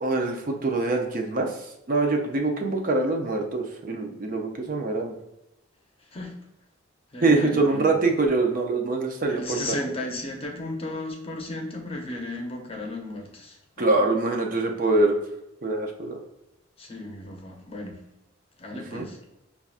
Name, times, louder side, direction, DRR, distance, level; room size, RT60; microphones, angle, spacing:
voice 1, 0.0-1.6 1.9-5.2 7.2-9.8 13.8-15.1 15.6-16.2 18.7-19.1, right 2 dB, 45° right, 3 dB, 0.5 m, -24 dB
voice 2, 6.0-6.4 7.1-8.0 9.3-14.0 16.8-18.0 18.6-19.2, left 2 dB, 30° left, 1 dB, 0.7 m, -35 dB
5.5 x 2.3 x 2.4 m, 0.89 s
head